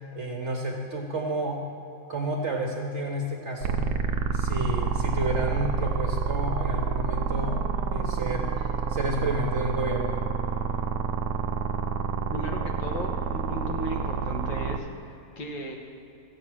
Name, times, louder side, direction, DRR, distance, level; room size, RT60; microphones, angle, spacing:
voice 1, 0.1-1.7 2.1-3.9 4.3-7.6 7.9-8.5 8.9-10.3, right 1 dB, 50° right, 2 dB, 1.0 m, -30 dB
sound 1, 3.6-14.8, right 6 dB, 70° right, 1.0 m, -28 dB
voice 2, 12.3-15.7, equal, 75° left, 1 dB, 2.1 m, -35 dB
14.0 x 8.4 x 6.1 m, 2.8 s
omnidirectional pair, 2.1 m